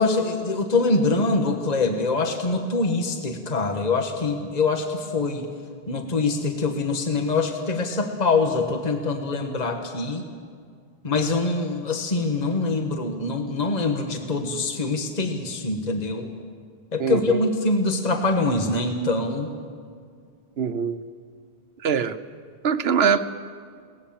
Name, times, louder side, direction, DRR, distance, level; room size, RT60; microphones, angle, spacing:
voice 1, 0.0-5.4 5.9-10.2 11.0-16.3 16.9-19.5, left 3 dB, 45° left, 4 dB, 1.4 m, -24 dB
voice 2, 17.0-17.4 20.6-21.0 21.8-22.2 22.6-23.2, right 6 dB, 80° right, 11 dB, 1.1 m, -22 dB
22.0 x 18.5 x 7.3 m, 2.1 s
omnidirectional pair, 1.0 m